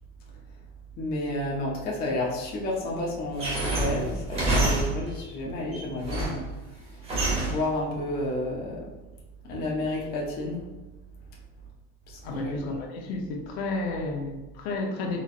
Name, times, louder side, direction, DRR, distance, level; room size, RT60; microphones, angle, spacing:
voice 1, 1.0-6.4 7.4-8.9 9.5-10.6 12.1-12.6 13.9-14.1, left 1 dB, 30° left, -3 dB, 0.7 m, -31 dB
sound 1, 3.4-5.2 5.7-6.5 7.1-7.7, right 2 dB, 20° right, 0.7 m, -27 dB
voice 2, 12.2-15.2, left 2 dB, 80° left, 1 dB, 0.8 m, -32 dB
4.1 x 2.9 x 2.4 m, 1.1 s
cardioid pair, 170°, 31 cm